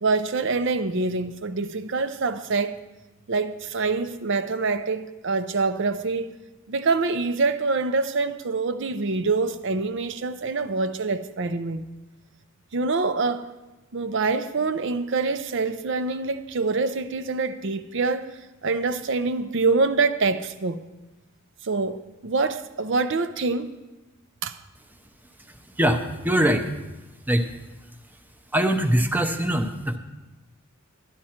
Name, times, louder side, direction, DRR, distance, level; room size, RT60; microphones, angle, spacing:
voice 1, 0.0-2.8 3.3-6.3 6.7-11.8 12.7-13.5 13.9-18.3 18.6-20.8 21.6-23.7 24.4-24.6, right 3 dB, 60° right, 0.6 m, -25 dB
voice 2, 25.8-26.7 27.3-27.5 28.5-30.0, right 1 dB, 10° right, 0.7 m, -22 dB
12.5 x 11.0 x 4.3 m
head